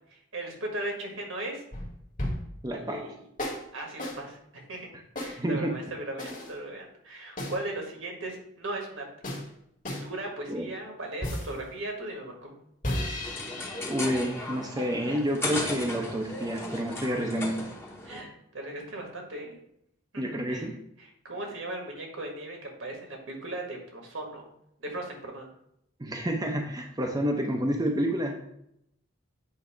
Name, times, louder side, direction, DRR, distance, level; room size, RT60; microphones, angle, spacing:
voice 1, 0.1-1.6 2.7-3.2 3.7-4.9 5.2-9.0 9.9-12.5 18.0-19.6 20.1-20.7 21.0-24.5 24.8-25.5, right 2 dB, 75° right, 1 dB, 1.7 m, -37 dB
sound 1, 1.7-2.6 3.4-3.7 4.0-4.2 5.2-5.4 6.2-6.5 7.4-7.6 9.2-9.5 9.8-10.1 11.2-11.6 12.8-14.9, left 1 dB, 40° left, 1.6 m, -34 dB
voice 2, 2.6-3.1 5.4-5.8 10.5-10.7 13.8-17.6 20.2-20.8 26.0-28.4, equal, 20° right, 1 dB, 0.6 m, -29 dB
sound 2, 13.2-18.2, left 2 dB, 10° left, 0.9 m, -36 dB
8.1 x 2.8 x 4.9 m, 0.75 s
head